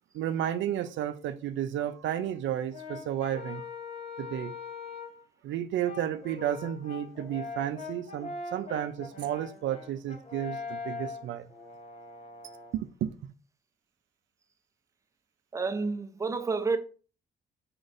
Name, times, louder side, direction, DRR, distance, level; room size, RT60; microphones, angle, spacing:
voice 1, 0.1-3.6 4.2-4.5 5.4-11.5 12.7-13.3, right 11 dB, 70° right, 0.4 m, -32 dB
Brass instrument, 2.7-5.2 5.8-12.8, left 4 dB, 35° left, 0.9 m, -42 dB
voice 2, 15.5-16.8, right 4 dB, 15° right, 0.5 m, -29 dB
4.4 x 3.9 x 2.5 m
cardioid pair, 90°, 20 cm